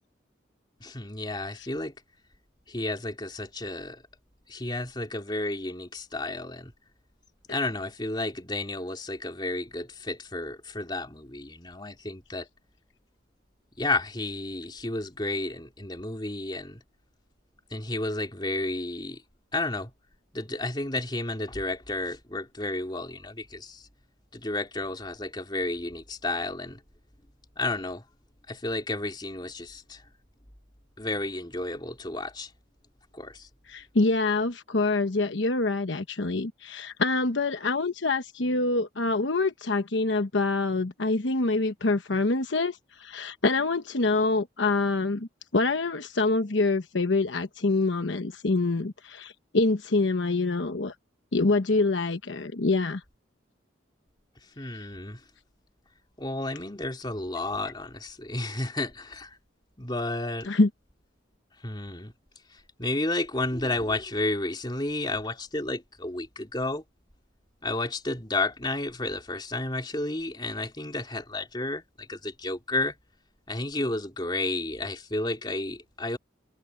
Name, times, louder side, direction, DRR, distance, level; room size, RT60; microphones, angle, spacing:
voice 1, 0.8-1.9 2.7-4.0 4.5-6.7 7.5-12.5 13.8-16.8 17.7-19.2 19.5-19.9 20.3-23.9 24.3-26.8 27.6-28.0 28.5-30.1 31.0-32.5 33.1-33.5 54.6-55.2 56.2-59.4 59.8-60.5 61.6-62.1 62.5-66.8 67.6-72.9 73.5-76.2, left 2 dB, 25° left, 3.4 m, -32 dB
voice 2, 33.7-50.9 51.3-53.0 60.5-60.7, left 3 dB, 75° left, 1.1 m, -26 dB
head